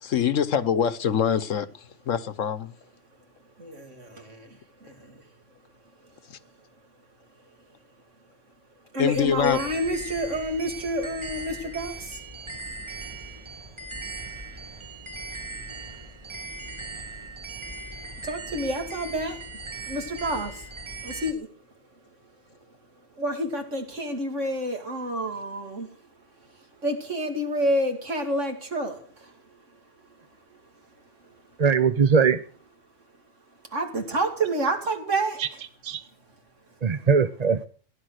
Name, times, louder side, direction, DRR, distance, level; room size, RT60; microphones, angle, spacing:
voice 1, 0.0-2.7 6.3-6.4 9.0-9.6, left 8 dB, 75° left, 1.3 m, -25 dB
voice 2, 3.6-4.1 8.9-11.9 18.3-19.4 19.9-20.5 21.0-21.5 23.2-25.9 26.8-29.0 33.7-35.4, right 1 dB, 65° right, 2.9 m, -28 dB
sound 1, 9.1-21.3, right 3 dB, 20° right, 1.5 m, -39 dB
voice 3, 31.6-32.4 35.4-35.5 35.8-36.0 36.8-37.6, right 6 dB, 35° right, 0.8 m, -20 dB
16.0 x 11.0 x 6.5 m
omnidirectional pair, 1.4 m